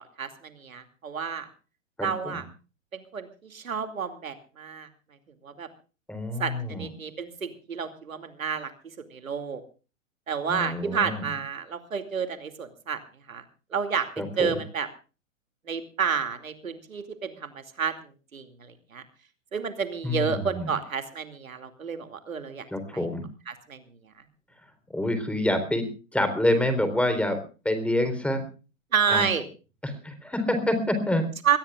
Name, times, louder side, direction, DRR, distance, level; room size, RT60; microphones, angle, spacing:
voice 1, 0.0-1.5 2.0-2.4 2.9-4.9 5.4-5.7 6.4-8.7 9.1-9.6 10.3-13.0 13.3-13.4 13.7-14.1 14.4-14.9 15.7-17.9 18.3-19.0 19.5-22.7 22.9-23.1 23.5-23.8 28.9-29.5 31.4-31.6, right 6 dB, 85° right, 9 dB, 2.7 m, -30 dB
voice 2, 6.1-6.9 10.5-11.3 14.2-14.5 20.0-20.7 22.7-23.2 24.9-25.9 26.1-27.4 27.6-28.5 29.1-29.2 29.8-31.3, left 1 dB, 5° left, 8 dB, 4.0 m, -27 dB
24.0 x 19.5 x 2.5 m, 0.34 s
hypercardioid pair, 120°, 40 cm